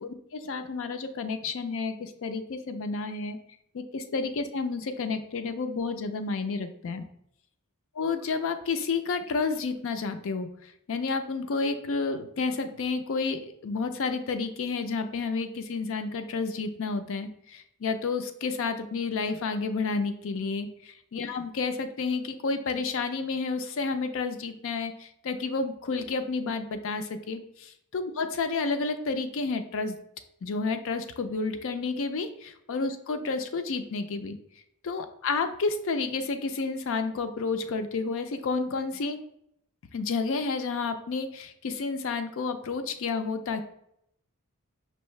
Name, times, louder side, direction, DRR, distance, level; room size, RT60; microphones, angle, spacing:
voice 1, 0.0-3.4 3.7-7.0 8.0-10.5 10.9-20.7 21.1-30.0 30.4-34.4 34.9-39.2 39.9-43.6, left 4 dB, 65° left, 9 dB, 0.5 m, -30 dB
5.4 x 2.6 x 3.1 m, 0.74 s
head